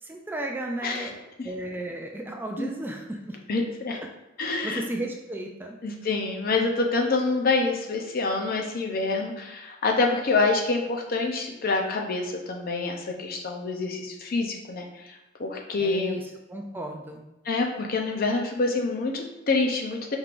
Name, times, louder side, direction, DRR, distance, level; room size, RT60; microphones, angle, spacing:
voice 1, 0.0-1.2 1.4-3.4 4.6-5.7 15.8-17.2, right 1 dB, 10° right, 1 dB, 0.3 m, -34 dB
voice 2, 3.5-4.0 4.4-4.8 5.8-15.1 15.4-16.2 17.4-20.2, left 3 dB, 50° left, 2 dB, 0.6 m, -26 dB
4.4 x 3.5 x 2.5 m, 0.98 s
head